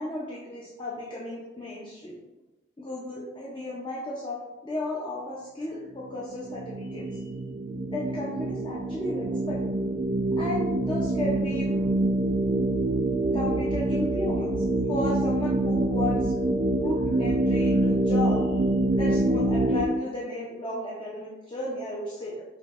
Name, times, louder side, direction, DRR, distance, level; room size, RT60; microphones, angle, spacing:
voice 1, 0.0-2.2 2.8-7.2 7.9-9.6 10.4-11.9 13.3-16.3 16.8-18.6 18.9-22.4, left 1 dB, 25° left, -5 dB, 0.5 m, -34 dB
sound 1, 6.0-19.9, right 2 dB, 30° right, 0.3 m, -26 dB
5.6 x 2.7 x 2.4 m, 1.1 s
head